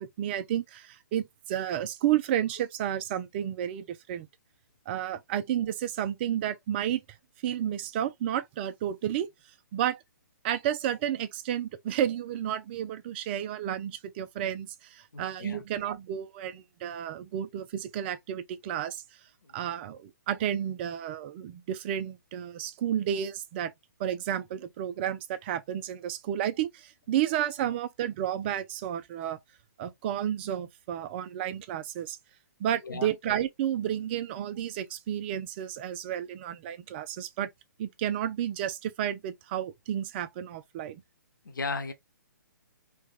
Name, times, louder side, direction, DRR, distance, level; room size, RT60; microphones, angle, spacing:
voice 1, 0.0-4.3 4.9-7.0 7.4-9.3 9.7-10.0 10.4-19.0 19.5-23.7 24.0-29.4 29.8-32.2 32.6-37.5 37.8-41.0, right 10 dB, 35° right, 0.4 m, -31 dB
voice 2, 15.1-15.7 19.4-19.7 27.6-27.7 32.8-33.1 41.4-41.9, left 4 dB, 80° left, 0.8 m, -36 dB
3.4 x 2.3 x 2.4 m
hypercardioid pair, 135°, 10 cm